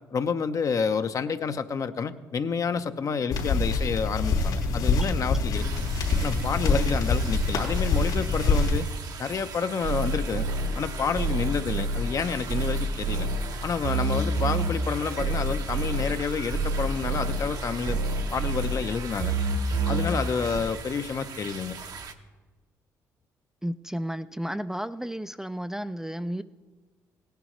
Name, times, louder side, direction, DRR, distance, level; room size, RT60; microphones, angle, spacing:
voice 1, 0.1-5.8 6.2-8.8 9.2-10.5 10.8-13.3 13.6-18.0 18.3-19.3 19.8-21.8, left 6 dB, 50° left, 9 dB, 0.7 m, -29 dB
sound 1, 3.3-8.8, left 3 dB, 75° left, 3.5 m, -25 dB
sound 2, 5.5-22.1, right 5 dB, 55° right, 0.9 m, -41 dB
sound 3, 9.8-20.6, right 2 dB, 80° right, 1.9 m, -28 dB
voice 2, 23.6-26.4, equal, 5° right, 11 dB, 0.4 m, -32 dB
17.5 x 10.5 x 3.1 m, 1.3 s
supercardioid pair, 60°, 7 cm